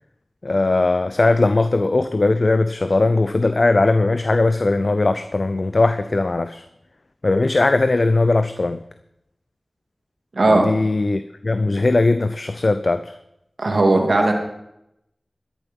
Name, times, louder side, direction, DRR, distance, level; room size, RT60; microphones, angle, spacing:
voice 1, 0.4-6.6 7.2-8.8 10.5-13.1, left 2 dB, 60° left, 10 dB, 0.6 m, -19 dB
voice 2, 10.3-10.7 13.6-14.3, right 2 dB, 70° right, 2 dB, 2.6 m, -16 dB
13.0 x 11.0 x 5.5 m, 0.82 s
wide cardioid pair, 45°, 0 cm